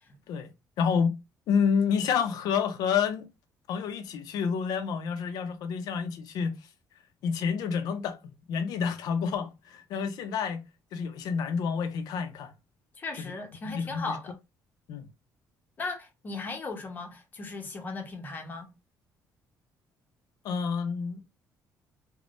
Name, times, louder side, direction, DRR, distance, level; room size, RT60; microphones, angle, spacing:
voice 1, 0.8-1.2 1.5-3.3 3.7-6.5 7.2-8.2 8.5-10.6 10.9-12.5 13.2-13.3 13.7-14.2 14.9-15.1 20.4-21.2, left 6 dB, 80° left, 0.5 m, -29 dB
voice 2, 13.0-14.3 15.8-18.7, left 3 dB, 30° left, 0.7 m, -37 dB
3.4 x 2.1 x 2.5 m
cardioid pair, 140°, 7 cm